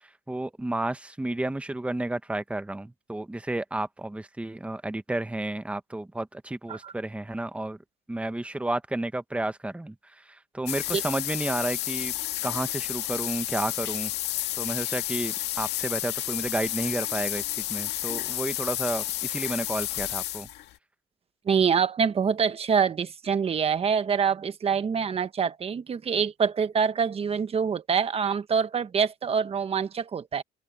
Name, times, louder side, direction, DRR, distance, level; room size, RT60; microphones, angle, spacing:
voice 1, 0.3-7.8 8.1-9.9 10.3-12.1 12.4-14.1 14.6-20.5, right 1 dB, 5° right, 1.1 m, -31 dB
sound 1, 10.7-20.7, left 14 dB, 80° left, 2.0 m, -31 dB
voice 2, 21.4-30.4, right 6 dB, 35° right, 1.3 m, -25 dB
cardioid pair, 110°, 17 cm